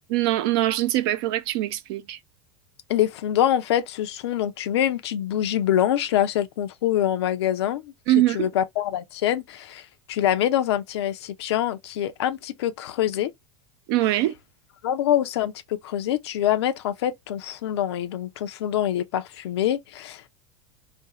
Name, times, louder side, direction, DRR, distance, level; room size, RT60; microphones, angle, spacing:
voice 1, 0.1-2.2 8.1-8.5 13.9-14.3, right 15 dB, 55° right, 0.4 m, -23 dB
voice 2, 2.9-7.9 8.3-13.3 14.8-20.3, left 11 dB, 65° left, 0.4 m, -25 dB
2.5 x 2.2 x 2.8 m
figure-of-eight pair, 85°, 15 cm